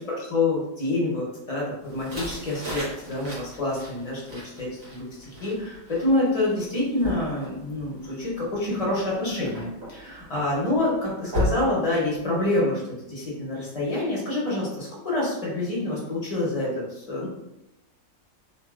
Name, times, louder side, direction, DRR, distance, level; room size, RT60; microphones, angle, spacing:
voice 1, 0.0-12.8 13.1-17.3, left 2 dB, 35° left, -5 dB, 0.7 m, -27 dB
sound 1, 1.8-12.6, left 1 dB, 75° right, 1.5 m, -36 dB
2.8 x 2.7 x 2.4 m, 0.88 s
omnidirectional pair, 1.4 m